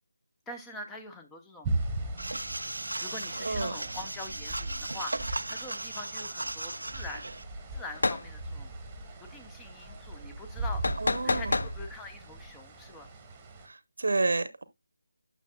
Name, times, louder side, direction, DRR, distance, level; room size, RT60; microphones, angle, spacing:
voice 1, 0.5-1.7 3.0-7.3 7.7-8.7 9.2-13.1, left 2 dB, 5° left, 0.8 m, -44 dB
sound 1, 1.6-13.7, right 2 dB, 10° right, 1.4 m, -38 dB
sound 2, 2.2-7.4, right 2 dB, 85° right, 0.4 m, -36 dB
voice 2, 3.4-3.7 11.0-11.5 13.6-14.6, right 3 dB, 65° right, 0.8 m, -30 dB
sound 3, 7.9-8.3 10.8-11.7, left 3 dB, 65° left, 0.4 m, -28 dB
9.0 x 6.5 x 2.2 m
figure-of-eight pair, 165°, 0 cm